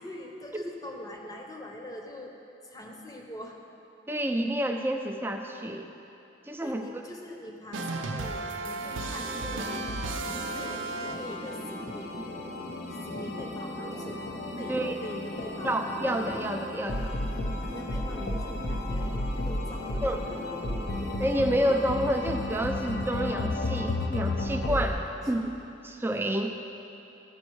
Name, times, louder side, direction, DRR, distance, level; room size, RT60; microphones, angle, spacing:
voice 1, 0.0-2.3 2.6-3.6 6.6-10.9 11.2-12.7 13.1-14.2 14.6-15.8 17.6-19.1 19.5-20.8 24.7-25.0 25.4-25.5 26.4-26.5, left 1 dB, 20° left, 1 dB, 0.8 m, -43 dB
voice 2, 4.1-5.9 6.5-6.9 14.7-15.0 15.6-17.1 20.0-20.2 21.2-24.9 25.3-25.5 25.8-26.5, right 1 dB, 10° right, 4 dB, 0.4 m, -29 dB
sound 1, 7.7-11.6, right 3 dB, 90° right, 0.6 m, -34 dB
sound 2, 8.9-24.9, left 2 dB, 70° left, 0.7 m, -34 dB
sound 3, 9.1-22.2, right 1 dB, 35° right, 0.8 m, -42 dB
14.0 x 5.3 x 4.7 m, 2.9 s
head